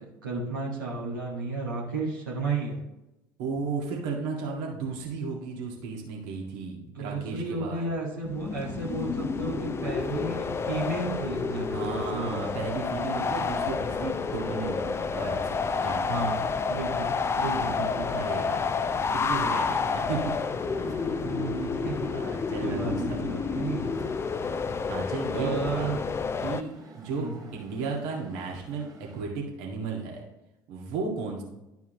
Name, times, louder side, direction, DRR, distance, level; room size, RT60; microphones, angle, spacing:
voice 1, 0.0-2.8 6.9-12.4 16.1-16.4 16.7-18.4 21.2-22.1 22.6-23.9 25.3-26.0 27.1-27.4, right 3 dB, 80° right, -6 dB, 1.7 m, -33 dB
voice 2, 3.4-7.9 11.7-16.3 17.6-20.3 20.8-21.3 22.1-23.3 24.9-25.9 26.4-28.9 29.1-30.2 30.7-31.4, right 4 dB, 60° right, -1 dB, 1.9 m, -35 dB
sound 1, 8.2-26.6, left 5 dB, 25° left, 0.5 m, -30 dB
sound 2, 9.8-29.2, right 3 dB, 35° right, 1.8 m, -51 dB
11.5 x 4.6 x 3.0 m, 0.93 s
figure-of-eight pair, 65°, 11 cm